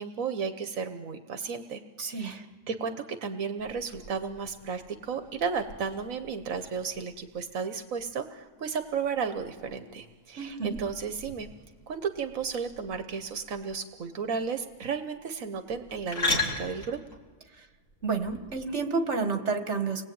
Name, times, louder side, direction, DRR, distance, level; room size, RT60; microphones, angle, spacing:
voice 1, 0.0-1.8 2.1-11.5 11.9-17.0, right 6 dB, 85° right, 8 dB, 1.5 m, -33 dB
voice 2, 2.0-2.4 10.4-10.8 17.6-17.7 18.0-20.0, right 4 dB, 60° right, 6 dB, 2.1 m, -30 dB
sound 1, 3.6-18.6, left 3 dB, 75° left, 4.2 m, -39 dB
30.0 x 20.5 x 8.9 m, 1.3 s
omnidirectional pair, 1.4 m